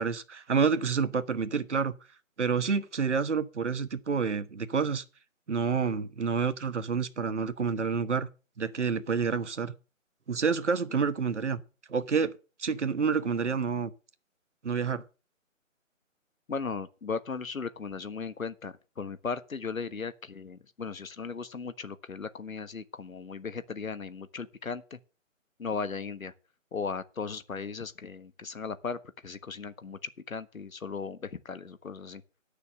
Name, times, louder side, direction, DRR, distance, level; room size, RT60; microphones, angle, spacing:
voice 1, 0.0-1.9 2.4-5.0 5.5-8.3 8.6-9.7 10.3-11.6 11.9-12.3 12.6-13.9 14.6-15.0, right 5 dB, 60° right, 1.2 m, -28 dB
voice 2, 16.5-25.0 25.6-26.3 26.7-32.2, left 5 dB, 85° left, 1.4 m, -37 dB
10.0 x 6.8 x 7.5 m
figure-of-eight pair, 175°, 40 cm